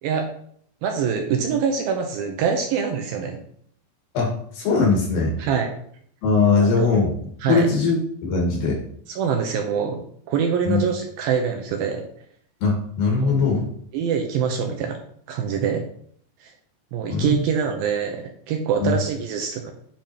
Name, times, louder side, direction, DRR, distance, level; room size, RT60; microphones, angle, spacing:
voice 1, 0.8-3.4 5.4-5.8 6.5-6.9 7.4-7.7 9.1-12.0 13.2-13.3 13.9-15.0 15.3-15.8 16.4-16.5 16.9-19.7, right 7 dB, 75° right, 3 dB, 2.3 m, -24 dB
voice 2, 4.1-5.3 6.2-7.1 7.5-8.0 8.2-8.8 10.7-10.8 12.6-13.6 17.1-17.4 18.8-19.0, left 4 dB, 65° left, -1 dB, 3.0 m, -20 dB
9.0 x 5.1 x 2.9 m, 0.62 s
omnidirectional pair, 4.7 m